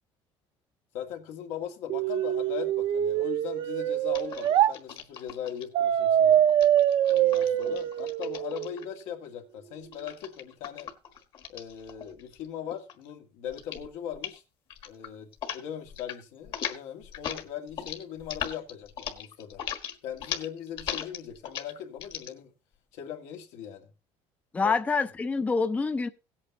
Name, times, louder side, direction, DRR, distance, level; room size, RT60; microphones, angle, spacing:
voice 1, 0.9-6.5 7.1-10.9 11.5-14.4 14.9-19.6 20.0-22.5 22.9-23.9 24.6-24.7, left 9 dB, 85° left, 2.1 m, -39 dB
sound 1, 1.9-4.7 5.7-8.8, right 11 dB, 50° right, 0.6 m, -24 dB
sound 2, 4.1-5.6 6.5-9.0 9.9-12.5 12.7-13.1 13.5-13.9 14.1-14.4 14.7-15.6 15.9-16.2 16.4-22.3, left 8 dB, 45° left, 1.5 m, -38 dB
voice 2, 24.5-26.1, left 4 dB, 15° left, 0.5 m, -26 dB
17.0 x 8.5 x 2.8 m
cardioid pair, 160°, 11 cm